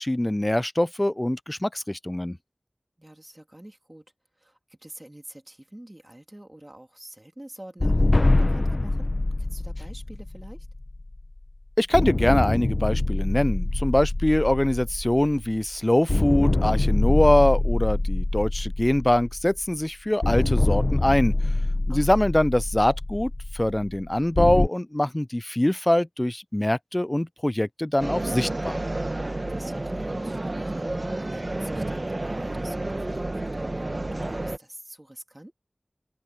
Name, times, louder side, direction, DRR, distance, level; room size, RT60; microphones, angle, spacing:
voice 1, 0.0-2.4 11.8-21.3 21.9-28.8, left 1 dB, 25° left, 0.3 m, -23 dB
voice 2, 3.0-4.0 4.4-10.7 21.9-22.2 29.5-35.5, right 1 dB, 25° right, 3.1 m, -46 dB
sound 1, 7.8-11.4 11.9-15.7 16.1-19.7 20.2-24.7, left 2 dB, 50° left, 0.9 m, -24 dB
sound 2, 28.0-34.6, right 2 dB, 45° right, 1.2 m, -30 dB
open air
wide cardioid pair, 55°, 0 cm